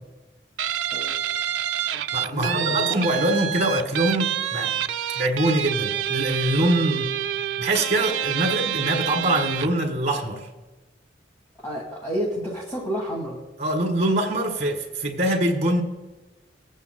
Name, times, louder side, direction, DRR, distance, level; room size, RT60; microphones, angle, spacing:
Guitar, 0.6-9.8, right 10 dB, 85° right, 0.4 m, -27 dB
voice 1, 0.9-1.2 2.3-3.3 11.6-13.4, equal, 15° left, -3 dB, 1.6 m, -30 dB
voice 2, 2.1-4.8 5.1-7.1 7.6-10.5 13.6-15.8, right 1 dB, 40° right, 3 dB, 1.5 m, -24 dB
21.0 x 8.2 x 2.2 m, 1.2 s
head